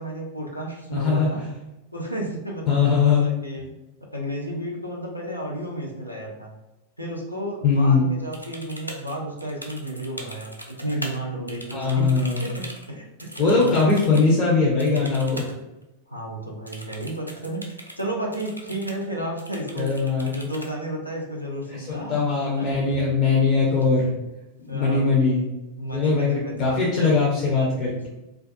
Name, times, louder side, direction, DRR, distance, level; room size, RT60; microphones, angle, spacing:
voice 1, 0.0-1.4 1.9-3.7 4.1-6.5 7.0-12.1 12.4-13.8 16.1-22.2 22.6-22.7 24.7-25.1 25.8-27.1, right 1 dB, 90° left, -2 dB, 0.5 m, -32 dB
voice 2, 0.9-1.3 2.7-3.3 7.6-8.1 11.7-12.5 13.4-15.5 19.8-20.3 21.8-24.1 24.7-25.5 25.9-28.1, left 4 dB, 35° left, -5 dB, 0.5 m, -21 dB
sound 1, 8.3-11.2 11.5-14.3 14.8-15.6 15.8-15.9 16.7-18.0 18.3-19.1 19.4-20.7 22.4-22.6 22.9-23.3 23.7-24.3, equal, 90° right, 0.3 m, -41 dB
2.3 x 2.2 x 2.5 m, 0.97 s
figure-of-eight pair, 90°, 0 cm